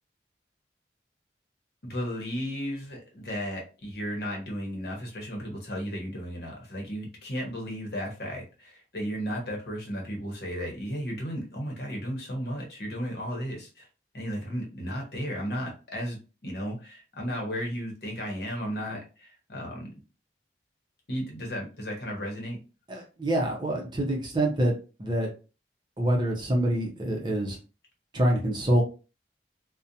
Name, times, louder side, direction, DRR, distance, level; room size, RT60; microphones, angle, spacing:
voice 1, 1.8-13.9 14.1-19.9 21.1-22.6, equal, 60° left, 0 dB, 0.9 m, -34 dB
voice 2, 22.9-24.7 25.0-25.3 26.0-27.6 28.1-28.8, right 1 dB, 25° right, 0 dB, 0.6 m, -26 dB
2.5 x 2.1 x 2.7 m, 0.33 s
head